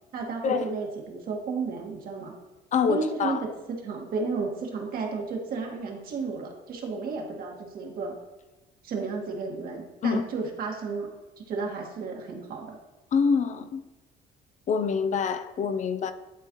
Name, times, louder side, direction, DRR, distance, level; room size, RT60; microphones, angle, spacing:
voice 1, 0.1-2.3 2.9-3.4 3.7-8.1 8.8-11.1 11.4-12.8, right 4 dB, 60° right, 1.8 m, -33 dB
voice 2, 2.7-3.4 10.0-10.2 13.1-13.8 14.7-16.1, left 6 dB, 45° left, 0.5 m, -25 dB
11.0 x 4.2 x 3.0 m
cardioid pair, 110°, 17 cm